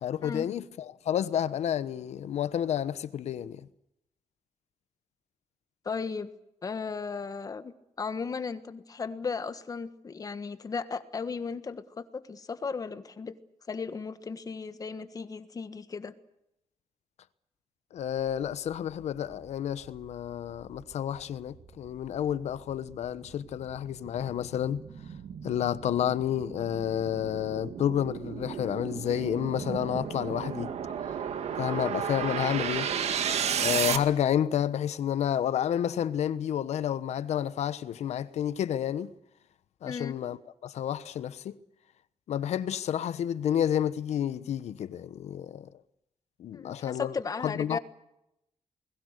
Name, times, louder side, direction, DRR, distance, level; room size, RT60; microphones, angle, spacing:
voice 1, 0.0-3.6 17.9-24.8 25.4-30.7 31.1-31.2 31.6-32.9 33.6-39.1 39.8-40.4 40.6-41.6 42.3-45.7 46.4-47.1 47.4-47.8, left 10 dB, 85° left, 1.1 m, -30 dB
voice 2, 5.8-6.3 6.6-7.7 8.0-13.4 13.7-16.1 39.8-40.2 46.5-47.8, left 5 dB, 35° left, 1.5 m, -35 dB
sound 1, 19.3-19.4 19.8-34.0, right 8 dB, 75° right, 2.0 m, -34 dB
29.0 x 21.0 x 6.7 m
wide cardioid pair, 155°, 11 cm